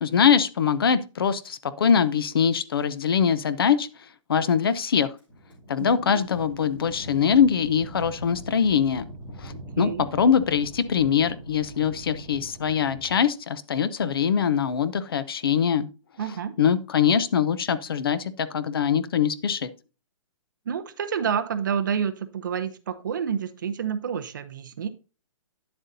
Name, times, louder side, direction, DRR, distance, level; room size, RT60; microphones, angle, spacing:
voice 1, 0.0-3.9 4.3-5.1 5.7-9.1 9.4-15.9 16.6-19.7, left 7 dB, 45° left, 15 dB, 0.6 m, -23 dB
sound 1, 5.2-13.2, equal, 10° left, 2.4 m, -42 dB
voice 2, 5.8-6.2 9.5-10.1 16.2-16.6 20.7-24.9, right 7 dB, 35° right, 10 dB, 0.7 m, -29 dB
9.7 x 7.7 x 2.6 m, 0.32 s
hypercardioid pair, 180°, 17 cm